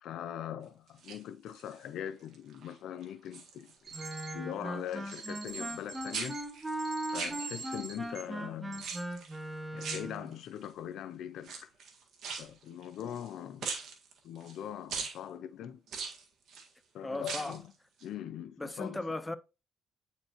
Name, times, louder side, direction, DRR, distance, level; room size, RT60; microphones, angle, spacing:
voice 1, 0.0-6.4 7.1-8.9 9.7-11.7 12.4-13.7 14.2-15.8 16.9-17.7 18.0-19.0, left 10 dB, 80° left, 0.4 m, -42 dB
sound 1, 0.9-1.8 2.3-2.7 3.0-4.1 4.3-5.9 6.1-7.9 8.8-9.4 9.8-10.7 11.4-13.3 13.6-14.6 14.9-15.2 15.9-16.7 17.1-17.7 18.0-18.1, right 5 dB, 70° right, 1.7 m, -41 dB
sound 2, 3.8-4.3 5.1-8.2 8.7-9.0, right 5 dB, 55° right, 2.3 m, -44 dB
Wind instrument woodwind instrument, 3.9-10.3, right 1 dB, 15° right, 1.2 m, -39 dB
voice 2, 17.0-17.6 18.6-19.4, left 2 dB, 15° left, 0.4 m, -36 dB
8.6 x 4.4 x 2.9 m
cardioid pair, 90°, 0 cm